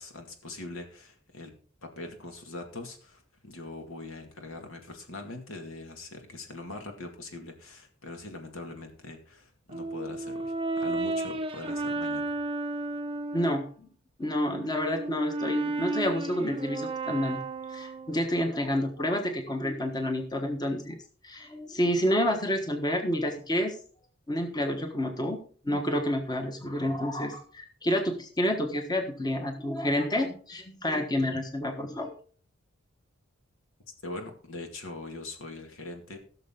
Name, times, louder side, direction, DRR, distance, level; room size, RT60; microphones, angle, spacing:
voice 1, 0.0-1.5 1.8-12.4 34.0-36.2, left 2 dB, 75° left, 4 dB, 2.3 m, -42 dB
Brass instrument, 9.7-13.7 14.2-18.3, right 2 dB, 25° right, 0.7 m, -33 dB
voice 2, 13.3-13.9 14.2-17.4 17.7-21.0 21.2-23.8 24.3-25.4 25.6-32.1, left 1 dB, 20° left, 4 dB, 1.3 m, -29 dB
16.5 x 6.8 x 3.8 m, 0.43 s
head